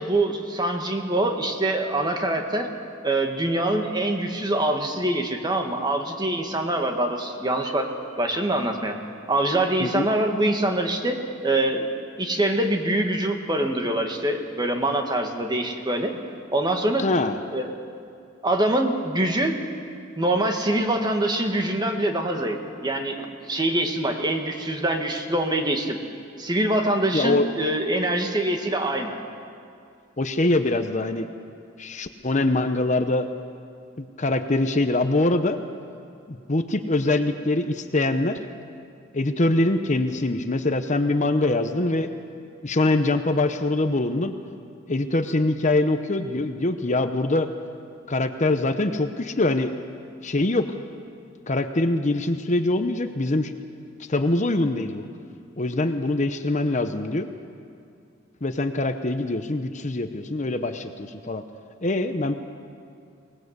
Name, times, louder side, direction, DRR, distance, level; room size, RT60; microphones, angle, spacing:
voice 1, 0.0-2.7 3.0-9.0 9.3-11.9 12.2-16.1 16.5-17.1 17.5-17.7 18.4-19.6 20.2-22.6 22.8-26.0 26.4-29.2, right 1 dB, 20° right, 4 dB, 1.8 m, -24 dB
voice 2, 17.0-17.4 27.1-27.5 30.2-31.3 31.8-33.3 34.0-35.6 36.3-38.4 39.1-42.1 42.6-44.3 44.9-47.5 48.1-49.7 50.2-50.7 51.5-53.5 54.1-55.0 55.6-57.3 58.4-61.4 61.8-62.3, left 2 dB, 40° left, 8 dB, 0.9 m, -23 dB
24.0 x 19.0 x 8.1 m, 2.4 s
head